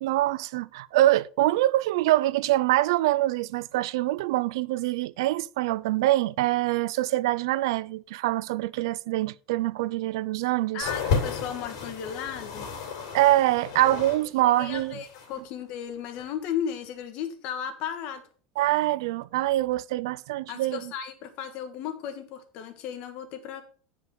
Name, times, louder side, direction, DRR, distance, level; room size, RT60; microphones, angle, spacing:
voice 1, 0.0-10.9 13.1-15.0 18.6-20.9, right 16 dB, 85° right, 0.4 m, -24 dB
voice 2, 10.7-12.7 14.6-18.2 20.5-23.6, left 8 dB, 50° left, 1.3 m, -35 dB
sound 1, 10.8-14.2 14.5-15.4 16.1-16.2, left 5 dB, 80° left, 2.7 m, -32 dB
9.3 x 5.0 x 4.7 m
supercardioid pair, 155°, 2 cm